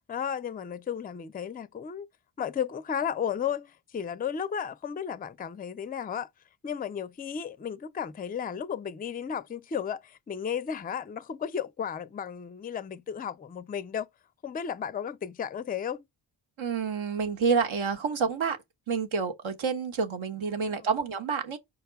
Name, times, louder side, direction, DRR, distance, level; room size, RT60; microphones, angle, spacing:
voice 1, 0.1-2.1 2.4-6.3 6.6-14.1 14.4-16.0 20.7-20.8, left 8 dB, 20° left, 0.4 m, -34 dB
voice 2, 16.6-18.6 18.9-21.6, right 5 dB, 65° right, 1.2 m, -28 dB
5.1 x 2.2 x 4.4 m
supercardioid pair, 45°, 50 cm